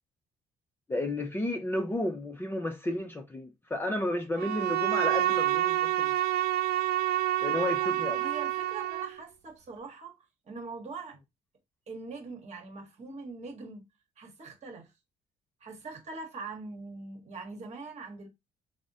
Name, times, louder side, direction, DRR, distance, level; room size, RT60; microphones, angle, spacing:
voice 1, 0.9-6.1 7.4-8.2, left 1 dB, 15° left, 0.5 m, -32 dB
Bowed string instrument, 4.4-9.2, right 14 dB, 70° right, 0.4 m, -28 dB
voice 2, 7.9-11.2 11.9-13.8 14.2-14.9 15.6-18.3, right 3 dB, 40° right, 1.1 m, -42 dB
3.5 x 2.0 x 2.7 m
cardioid pair, 110°, 17 cm